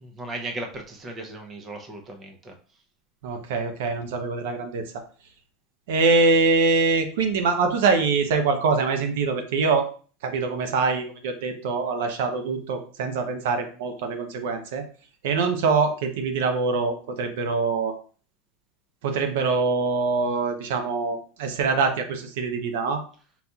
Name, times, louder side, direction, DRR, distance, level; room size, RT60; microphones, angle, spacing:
voice 1, 0.0-2.5, right 2 dB, 25° right, 4 dB, 0.6 m, -36 dB
voice 2, 3.2-4.8 5.9-9.9 10.2-14.8 15.2-17.9 19.0-23.0, right 4 dB, 80° right, 6 dB, 0.8 m, -24 dB
4.1 x 4.0 x 2.3 m, 0.40 s
supercardioid pair, 145°, 0 cm